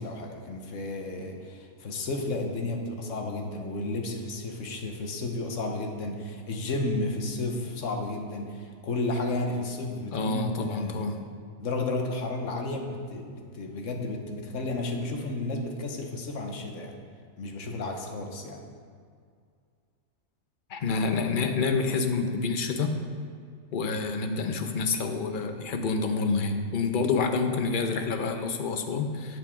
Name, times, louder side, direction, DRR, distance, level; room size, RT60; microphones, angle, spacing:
voice 1, 0.0-11.2 11.6-17.0 17.4-18.6 23.9-24.0, left 2 dB, 65° left, 3 dB, 1.3 m, -32 dB
voice 2, 10.1-11.3 20.7-23.0 23.7-29.4, left 4 dB, 45° left, 6 dB, 0.8 m, -28 dB
13.0 x 7.6 x 3.6 m, 2.2 s
omnidirectional pair, 1.5 m